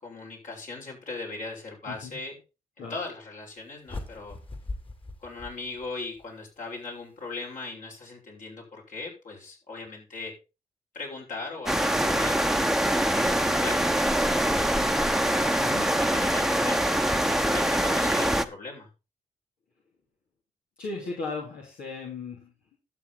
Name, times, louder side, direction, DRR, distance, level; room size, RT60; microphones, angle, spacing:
voice 1, 0.0-2.3 2.8-4.4 5.2-10.3 10.9-18.9, left 3 dB, 65° left, -1 dB, 5.7 m, -39 dB
voice 2, 1.9-2.2 2.8-2.9 15.6-15.9 20.8-22.8, left 4 dB, 80° left, -3 dB, 2.9 m, -37 dB
sound 1, 3.9-6.2, left 2 dB, 35° left, 2.7 m, -40 dB
sound 2, 11.7-18.5, right 1 dB, 5° right, 1.0 m, -24 dB
12.0 x 7.5 x 4.1 m, 0.30 s
supercardioid pair, 50°, 15 cm